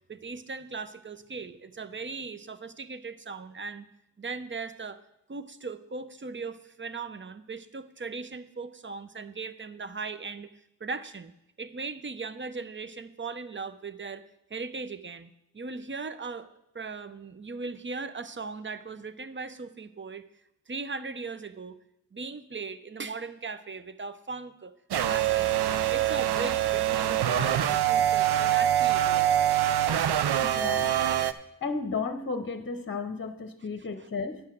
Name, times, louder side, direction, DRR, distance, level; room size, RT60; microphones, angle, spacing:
voice 1, 0.1-3.9 4.2-5.0 5.3-10.5 10.8-11.3 11.6-14.2 14.5-16.5 16.7-20.2 20.7-21.8 22.1-24.7 25.0-25.6 25.9-29.5 33.8-34.1, right 4 dB, 30° right, 12 dB, 0.8 m, -38 dB
sound 1, 24.9-31.3, right 11 dB, 75° right, 0.6 m, -24 dB
voice 2, 30.4-30.9 31.6-34.4, left 4 dB, 30° left, 8 dB, 1.0 m, -33 dB
9.8 x 5.6 x 6.3 m, 0.85 s
cardioid pair, 40°, 39 cm